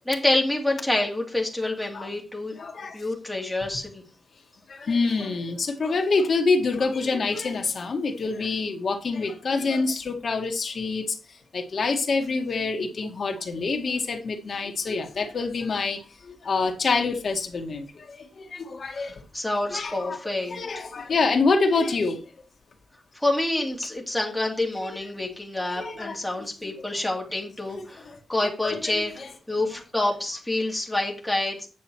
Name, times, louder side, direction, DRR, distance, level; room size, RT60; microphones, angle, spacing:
voice 1, 0.1-2.6 2.9-4.0 19.0-20.8 23.1-29.1 29.5-31.7, left 2 dB, 5° left, 2.5 m, -27 dB
voice 2, 2.6-3.0 4.7-19.2 19.7-20.2 20.5-22.2 24.8-25.0 25.7-26.2 26.6-26.7 27.7-28.2 28.6-29.3, left 4 dB, 50° left, 1.9 m, -27 dB
9.4 x 6.9 x 4.6 m
wide cardioid pair, 170°, 0 cm